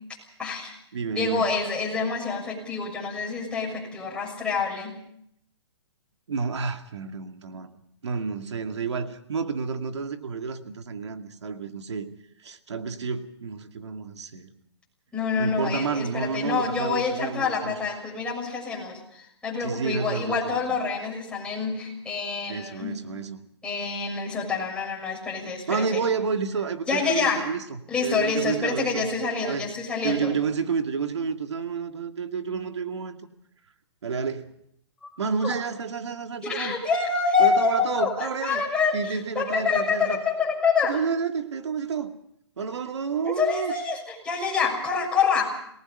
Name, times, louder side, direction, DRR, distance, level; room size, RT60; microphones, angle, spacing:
voice 1, 0.4-0.7 1.1-5.0 15.1-23.0 23.6-26.1 26.9-27.4 27.9-30.4 35.0-35.1 35.4-35.5 36.4-41.0 43.2-45.6, left 5 dB, 5° left, 6.4 m, -27 dB
voice 2, 0.9-1.5 6.3-7.7 8.0-12.1 12.4-14.5 15.4-17.7 19.6-20.6 22.5-23.4 25.7-29.1 29.5-29.7 30.0-33.2 34.0-34.5 35.2-36.7 37.4-38.6 38.9-40.2 40.8-42.1 42.6-43.7, right 5 dB, 80° right, 2.2 m, -30 dB
27.5 x 18.5 x 5.5 m
hypercardioid pair, 140°, 14 cm